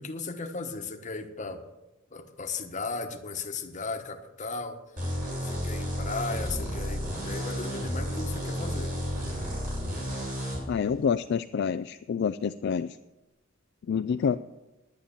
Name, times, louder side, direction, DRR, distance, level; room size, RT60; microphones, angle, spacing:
voice 1, 0.0-1.6 2.1-4.8 5.4-8.9, left 4 dB, 40° left, 6 dB, 1.1 m, -36 dB
sound 1, 5.0-10.6, equal, 45° right, 5.8 m, -32 dB
voice 2, 10.7-13.0 13.9-14.4, left 6 dB, 60° left, 11 dB, 0.3 m, -27 dB
10.5 x 9.6 x 7.0 m, 1.0 s
head